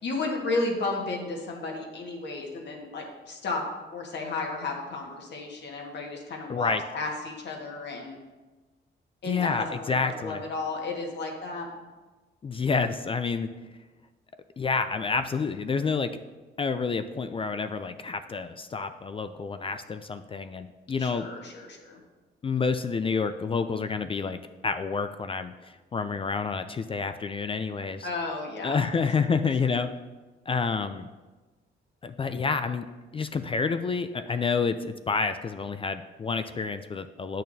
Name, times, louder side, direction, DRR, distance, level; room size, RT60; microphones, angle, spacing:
voice 1, 0.0-3.6 3.9-8.2 9.2-11.7 21.0-22.0 28.0-28.8, left 3 dB, 60° left, 0 dB, 1.6 m, -33 dB
voice 2, 6.5-6.8 9.3-10.4 12.4-13.5 14.6-16.1 16.6-21.3 22.4-24.4 24.6-28.1 28.6-29.9 30.5-31.1 32.0-32.9 33.1-37.4, left 5 dB, 25° left, 10 dB, 0.3 m, -29 dB
8.5 x 6.4 x 2.7 m, 1.2 s
cardioid pair, 90°, 20 cm